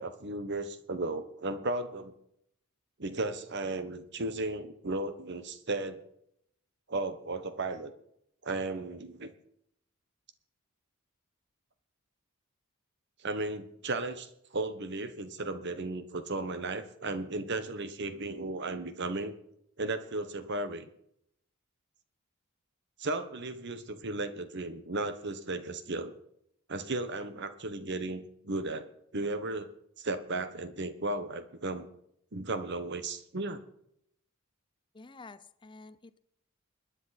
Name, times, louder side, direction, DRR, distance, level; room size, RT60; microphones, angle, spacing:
voice 1, 0.0-2.1 3.0-6.0 6.9-7.9 8.4-9.3 13.2-19.4 19.8-20.9 23.0-26.1 26.7-28.9 29.1-31.9 32.3-33.6, right 2 dB, 50° right, 11 dB, 1.2 m, -35 dB
voice 2, 34.9-36.2, left 3 dB, 20° left, 14 dB, 0.6 m, -50 dB
21.5 x 9.9 x 4.2 m, 0.73 s
head